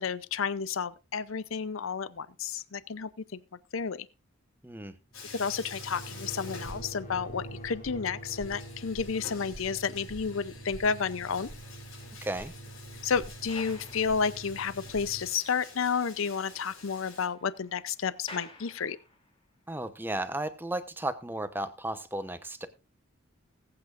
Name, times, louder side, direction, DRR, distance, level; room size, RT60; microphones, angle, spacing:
voice 1, 0.0-3.4 3.7-4.1 5.3-11.5 13.0-19.0, left 6 dB, 70° left, 0.6 m, -31 dB
voice 2, 4.6-4.9 12.2-12.5 19.7-22.7, right 1 dB, 10° right, 0.9 m, -34 dB
Bathtub (filling or washing), 5.1-7.4 7.7-7.8 8.2-17.3, left 4 dB, 90° left, 6.5 m, -49 dB
sound 1, 5.1-15.3, right 1 dB, 40° left, 4.2 m, -45 dB
sound 2, 11.4-15.0 15.3-15.4 15.8-15.9 16.2-19.4 20.1-20.3, left 2 dB, 25° left, 2.9 m, -52 dB
20.0 x 8.6 x 2.5 m
head